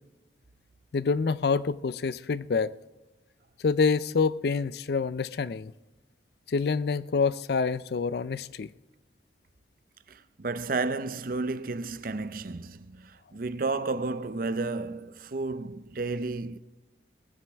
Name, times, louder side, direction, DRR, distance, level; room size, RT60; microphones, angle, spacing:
voice 1, 0.9-2.7 3.6-5.7 6.5-8.7, left 5 dB, 55° left, 0.4 m, -27 dB
voice 2, 10.1-16.6, right 3 dB, 50° right, 0.6 m, -32 dB
19.0 x 15.5 x 3.5 m
head